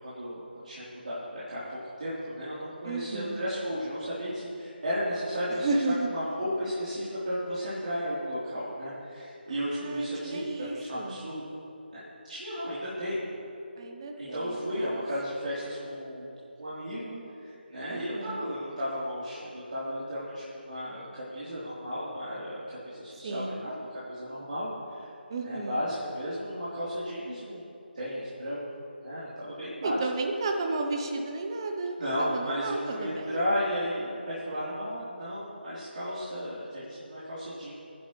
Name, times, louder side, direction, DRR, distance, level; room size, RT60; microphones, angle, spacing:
voice 1, 0.0-5.7 6.1-11.4 11.9-13.2 14.2-16.3 16.6-25.1 25.4-28.6 29.0-30.1 32.0-37.7, equal, 50° right, -11 dB, 3.7 m, -34 dB
voice 2, 2.8-3.4 5.5-6.1 9.5-11.2 13.8-15.0 17.9-18.4 23.2-23.6 25.3-25.8 29.8-33.4, right 3 dB, 25° right, 3 dB, 0.9 m, -33 dB
23.5 x 11.0 x 3.2 m, 3.0 s
figure-of-eight pair, 155°, 6 cm